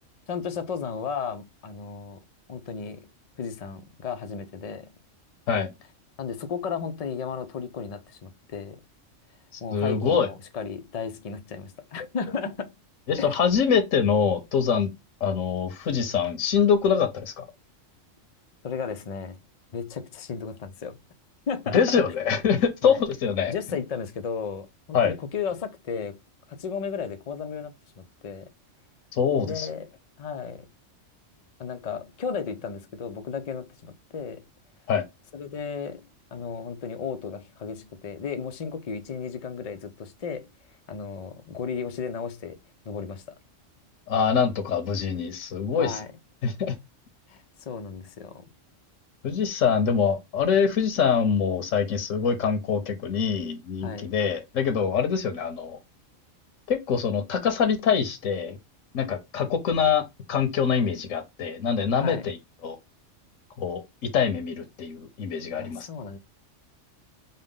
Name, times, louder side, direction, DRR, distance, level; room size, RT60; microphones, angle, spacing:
voice 1, 0.3-2.2 2.5-3.1 3.4-4.9 6.2-8.8 9.6-12.7 13.2-13.4 18.6-19.4 19.7-21.0 21.5-21.8 22.8-23.0 23.5-26.2 26.5-28.5 29.4-29.9 30.2-30.7 31.6-34.4 35.3-36.1 36.3-40.5 40.9-42.6 42.9-43.4 45.8-46.1 47.3-48.5 53.8-54.1 62.0-62.3 65.6-66.2, left 6 dB, 45° left, 0.5 m, -34 dB
voice 2, 9.7-10.3 13.1-14.9 15.2-17.4 21.7-23.5 24.9-25.1 29.1-29.7 34.9-35.0 44.1-46.0 46.4-46.7 49.2-55.8 56.7-58.6 58.9-60.0 60.3-62.4 62.6-62.8 63.6-65.9, left 6 dB, 85° left, 1.3 m, -24 dB
5.4 x 2.1 x 3.6 m
omnidirectional pair, 1.3 m